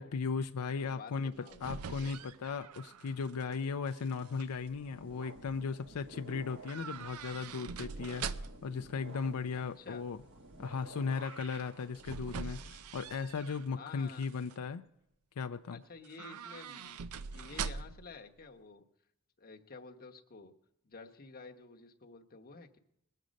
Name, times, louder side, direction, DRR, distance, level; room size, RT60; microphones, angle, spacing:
voice 1, 0.0-1.3 1.6-10.2 10.6-14.8 15.4-15.8, left 5 dB, 85° left, 8 dB, 0.5 m, -37 dB
voice 2, 0.8-2.1 9.5-10.0 13.8-14.4 15.7-18.8 19.4-20.5 20.8-22.8, left 4 dB, 40° left, 2 dB, 1.0 m, -51 dB
sound 1, 1.2-3.6 3.9-4.5 6.7-8.8 11.5-13.7 14.1-14.6 16.0-18.1 18.4-18.5, right 6 dB, 75° right, 0.5 m, -43 dB
sound 2, 4.5-13.4, right 1 dB, 55° right, 1.4 m, -52 dB
20.5 x 7.6 x 5.2 m, 0.82 s
head